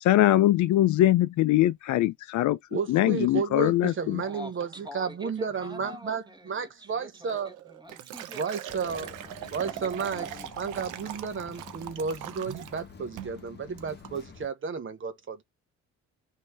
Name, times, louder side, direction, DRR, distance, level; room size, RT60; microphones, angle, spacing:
voice 1, 0.0-2.6 2.9-4.2, left 14 dB, 75° left, 0.5 m, -22 dB
voice 2, 2.7-7.5 8.3-9.1 9.5-10.3 10.6-15.4, right 5 dB, 40° right, 0.9 m, -32 dB
voice 3, 4.2-10.5, left 1 dB, 15° right, 1.5 m, -46 dB
Liquid, 7.3-12.8 13.2-13.4 13.8-14.2, right 12 dB, 85° right, 0.6 m, -41 dB
sound 1, 8.7-14.5, left 6 dB, 35° left, 0.9 m, -48 dB
3.1 x 2.8 x 4.6 m
cardioid pair, 90°, 30 cm